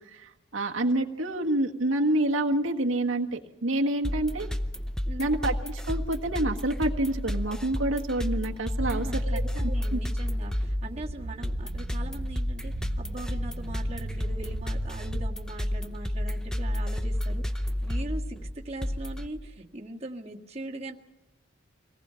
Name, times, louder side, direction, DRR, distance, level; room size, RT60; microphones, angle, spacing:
voice 1, 0.0-4.5 5.2-10.0, right 1 dB, 85° right, 1 dB, 1.6 m, -28 dB
sound 1, 4.0-19.3, left 1 dB, 5° left, 0.8 m, -31 dB
voice 2, 5.1-5.4 8.8-9.4 9.7-21.0, right 2 dB, 30° right, -1 dB, 1.8 m, -41 dB
sound 2, 8.8-16.3, right 3 dB, 55° right, 0.6 m, -41 dB
25.5 x 18.5 x 5.8 m, 1.0 s
head